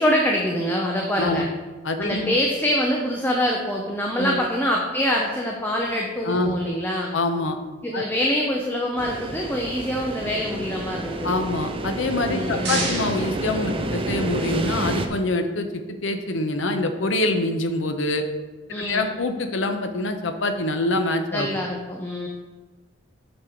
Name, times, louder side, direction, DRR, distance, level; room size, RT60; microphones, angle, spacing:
voice 1, 0.0-1.5 2.0-7.1 7.8-11.4 12.3-13.0 18.7-19.1 21.3-22.3, equal, 10° left, -1 dB, 0.7 m, -25 dB
voice 2, 1.2-1.5 1.8-2.4 4.2-4.4 6.2-6.5 7.1-7.6 7.9-8.1 11.2-18.3 18.8-21.5, left 2 dB, 75° left, 6 dB, 0.8 m, -25 dB
sound 1, 9.0-15.1, right 2 dB, 30° right, 0.6 m, -29 dB
sound 2, 12.1-14.3, right 2 dB, 65° right, 2.4 m, -32 dB
6.6 x 6.3 x 4.5 m, 1.3 s
head